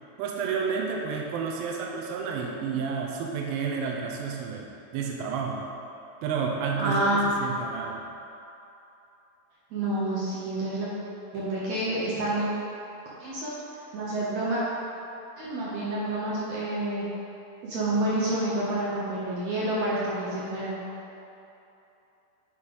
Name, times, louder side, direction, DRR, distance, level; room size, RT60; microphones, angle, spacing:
voice 1, 0.2-5.7 6.2-8.0, right 5 dB, 80° right, 0 dB, 2.4 m, -31 dB
voice 2, 6.8-7.4 9.7-10.9 11.3-12.5 13.2-13.5 13.9-14.6 15.4-17.0 17.6-20.7, right 1 dB, 65° right, -8 dB, 1.9 m, -28 dB
9.5 x 3.2 x 5.4 m, 2.9 s
omnidirectional pair, 4.3 m